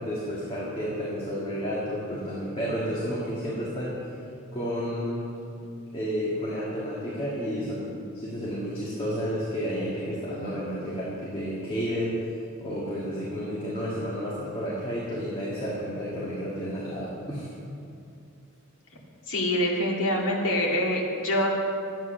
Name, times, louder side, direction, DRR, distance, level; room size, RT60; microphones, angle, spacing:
voice 1, 0.0-4.0 4.5-5.2 5.9-12.2 12.6-17.5, equal, 25° left, -7 dB, 2.0 m, -31 dB
voice 2, 19.3-21.5, left 1 dB, 60° left, -3 dB, 2.4 m, -25 dB
12.0 x 9.3 x 6.4 m, 2.5 s
head